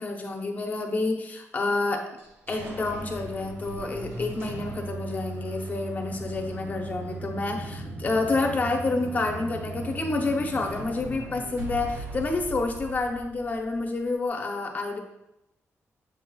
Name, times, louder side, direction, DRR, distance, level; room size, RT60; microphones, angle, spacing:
voice 1, 0.0-2.0 2.5-15.0, left 3 dB, 30° left, 3 dB, 0.8 m, -29 dB
sound 1, 2.2-13.8, right 2 dB, 50° right, 1.3 m, -38 dB
7.7 x 5.4 x 2.3 m, 0.88 s
wide cardioid pair, 170°, 5 cm